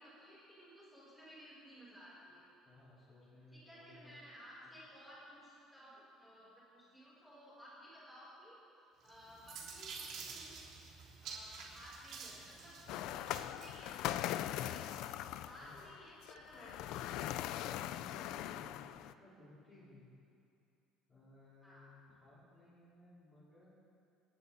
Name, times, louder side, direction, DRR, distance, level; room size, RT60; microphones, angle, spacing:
voice 1, 0.0-2.4 3.5-8.6 9.0-10.5 11.2-14.9 15.4-17.1 21.6-21.8, equal, ahead, -8 dB, 5.2 m, -56 dB
voice 2, 2.6-4.2 4.6-4.7 15.6-15.8 17.9-20.1 21.1-21.9 22.2-23.7, left 2 dB, 25° left, -10 dB, 4.5 m, -60 dB
sound 1, 9.1-13.8, right 5 dB, 50° right, 3.2 m, -49 dB
sound 2, 12.9-19.1, left 12 dB, 60° left, 0.4 m, -41 dB
29.5 x 10.5 x 4.3 m, 2.6 s
cardioid pair, 175°, 0 cm